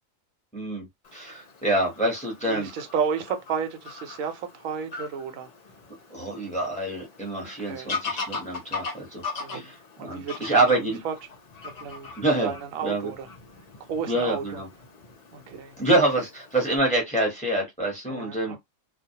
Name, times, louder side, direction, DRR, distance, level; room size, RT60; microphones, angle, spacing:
voice 1, 0.5-2.7 6.1-9.2 9.5-9.7 10.0-11.0 12.2-12.5 12.8-13.1 14.1-14.7 15.8-18.6, right 2 dB, 5° left, 0.8 m, -26 dB
Fowl / Bird vocalization bird call bird song, 1.0-16.8, left 4 dB, 50° left, 0.5 m, -40 dB
voice 2, 2.4-5.5 7.6-7.9 9.4-11.1 11.6-12.1 12.4-13.3 13.9-14.6 15.3-15.8 18.1-18.6, right 6 dB, 80° right, 1.0 m, -32 dB
2.4 x 2.0 x 2.7 m
omnidirectional pair, 1.4 m